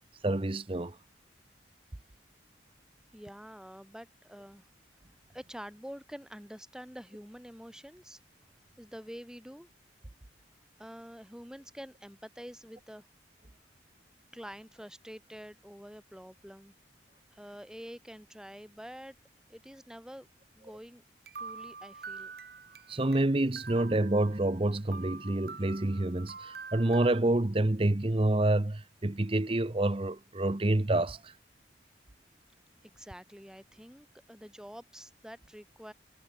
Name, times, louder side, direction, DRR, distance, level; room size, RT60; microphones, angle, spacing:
voice 1, 0.2-0.9 22.9-31.2, right 1 dB, 30° right, 0.8 m, -28 dB
voice 2, 3.1-4.7 5.3-8.2 8.8-9.7 10.8-13.1 14.3-16.7 17.3-19.2 19.5-20.3 20.6-21.0 21.4-22.3 32.8-35.9, equal, 5° right, 3.8 m, -47 dB
sound 1, 21.3-23.2 23.6-24.6 24.9-27.2, right 4 dB, 55° right, 2.5 m, -46 dB
head